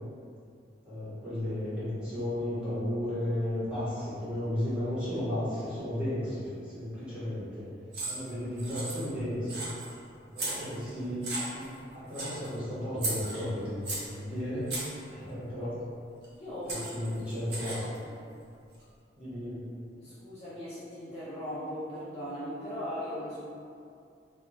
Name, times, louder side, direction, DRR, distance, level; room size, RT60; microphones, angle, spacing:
voice 1, 0.8-7.7 8.0-9.7 10.3-11.2 11.5-14.7 15.1-15.8 16.7-17.8 19.2-19.7, left 1 dB, 5° right, -13 dB, 0.8 m, -34 dB
sound 1, 7.9-8.3 8.6-9.2 9.5-9.9 10.4-10.9 11.2-11.8 12.1-12.5 13.0-14.1 14.7-15.0 16.2-16.3 16.7-18.0, right 2 dB, 60° right, 0.6 m, -36 dB
voice 2, 16.3-16.8 17.7-18.1 19.9-23.5, equal, 35° left, -10 dB, 0.4 m, -39 dB
2.3 x 2.2 x 3.0 m, 2.4 s
head